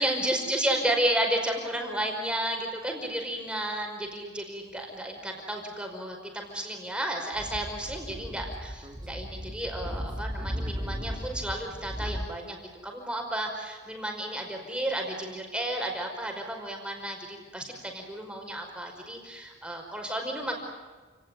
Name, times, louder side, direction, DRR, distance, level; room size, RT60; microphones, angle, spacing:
voice 1, 0.0-12.6 12.8-20.6, right 1 dB, 5° right, 2 dB, 5.2 m, -32 dB
Speech / Wind, 7.3-12.3, equal, 20° right, 2.6 m, -36 dB
29.5 x 18.5 x 9.5 m, 1.4 s
head